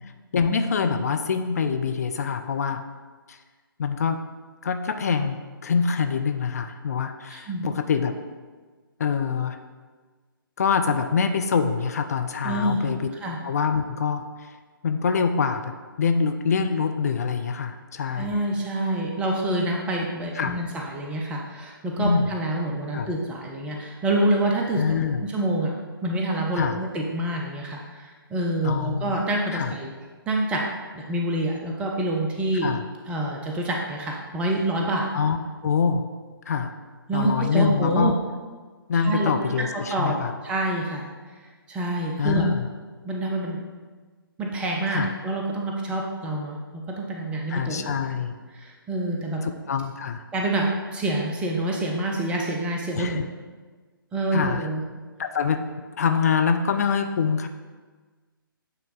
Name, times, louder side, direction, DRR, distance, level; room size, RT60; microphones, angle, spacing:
voice 1, 0.3-2.8 3.3-3.4 3.8-4.2 4.6-5.4 5.6-8.1 9.0-9.6 10.6-13.1 13.4-14.2 14.8-18.3 20.3-20.6 22.0-22.3 22.9-23.1 24.8-25.2 26.6-26.8 28.6-29.2 29.5-29.7 32.6-32.8 35.1-35.4 35.6-36.0 36.5-36.7 37.1-38.1 38.9-40.3 42.2-42.7 44.9-45.1 47.5-48.3 49.4-50.2 52.9-53.3 54.3-54.6 55.2-55.6 56.0-57.5, left 6 dB, 45° left, 7 dB, 0.4 m, -25 dB
voice 2, 7.3-7.7 12.4-12.9 13.2-13.4 18.2-24.8 25.2-25.7 26.0-29.9 30.3-30.6 30.9-32.7 33.1-35.1 37.1-38.1 39.0-39.3 39.6-41.1 41.7-42.5 43.0-43.6 44.4-48.1 48.5-49.4 50.3-53.2 54.1-54.8, right 1 dB, 10° right, -1 dB, 0.5 m, -27 dB
8.8 x 3.4 x 3.9 m, 1.4 s
figure-of-eight pair, 135°, 12 cm